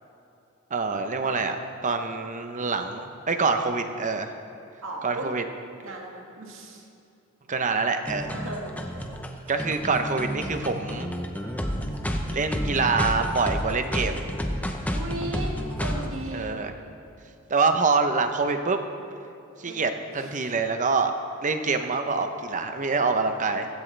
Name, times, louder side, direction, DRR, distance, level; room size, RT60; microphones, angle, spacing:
voice 1, 0.7-1.6 1.8-4.4 5.0-5.4 7.5-8.4 9.5-11.1 12.3-14.2 16.3-16.7 17.5-18.8 19.6-21.1 21.4-23.7, right 4 dB, 35° right, 7 dB, 0.8 m, -25 dB
voice 2, 4.8-5.3 5.8-6.9 8.3-8.8 14.9-16.6 19.6-19.8 20.2-20.5, right 1 dB, 65° right, 0 dB, 2.0 m, -36 dB
sound 1, 8.1-16.1, equal, 5° left, 0.8 m, -30 dB
15.5 x 15.0 x 3.4 m, 2.6 s
head